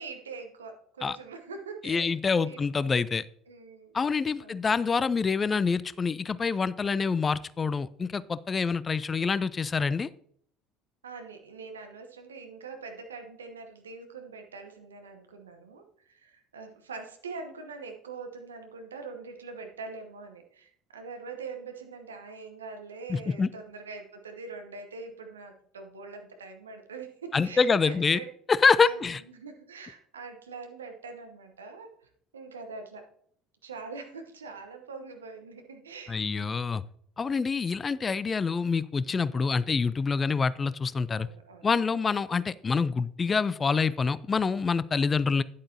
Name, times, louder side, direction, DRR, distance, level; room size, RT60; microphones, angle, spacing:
voice 1, 0.0-2.1 2.4-2.6 3.5-3.9 4.3-4.7 11.0-28.3 28.8-29.0 29.3-33.1 33.6-36.2 37.2-37.7 39.3-39.6 41.1-42.0, right 4 dB, 80° right, 5 dB, 1.0 m, -43 dB
voice 2, 1.8-3.3 3.9-10.1 23.1-23.5 27.3-28.2 28.5-29.2 36.1-36.8 37.2-41.3 41.6-45.4, left 5 dB, 30° left, 18 dB, 0.4 m, -26 dB
10.0 x 8.5 x 2.8 m, 0.65 s
figure-of-eight pair, 60°, 0 cm